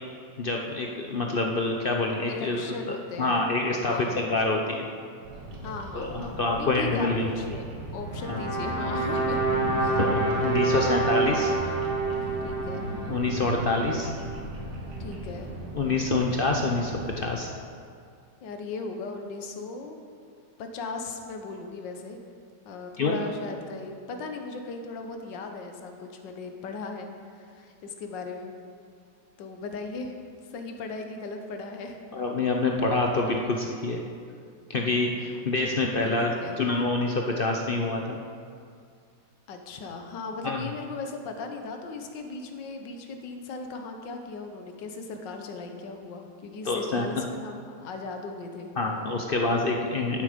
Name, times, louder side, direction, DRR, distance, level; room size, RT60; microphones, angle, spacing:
voice 1, 0.4-4.9 5.9-7.3 8.3-8.4 10.0-11.5 13.1-14.1 15.7-17.5 23.0-23.2 32.1-34.0 34.7-36.3 36.6-38.2 40.4-40.6 46.6-47.1 48.8-50.2, left 3 dB, 60° left, 1 dB, 0.5 m, -26 dB
voice 2, 2.3-3.4 3.8-4.2 5.6-7.6 7.9-9.4 9.7-10.0 10.5-10.9 12.4-12.9 15.0-15.5 18.4-20.0 20.6-22.2 22.6-27.1 27.4-28.5 29.4-30.1 30.5-32.0 35.3-35.6 36.0-36.6 39.5-48.7, left 3 dB, 90° left, 4 dB, 1.6 m, -37 dB
Bird vocalization bird call bird song, 5.2-17.2, right 2 dB, 85° right, 2.2 m, -36 dB
sound 1, 8.1-14.3, right 3 dB, 10° left, 2.9 m, -28 dB
10.5 x 8.7 x 5.0 m, 2.3 s
omnidirectional pair, 1.9 m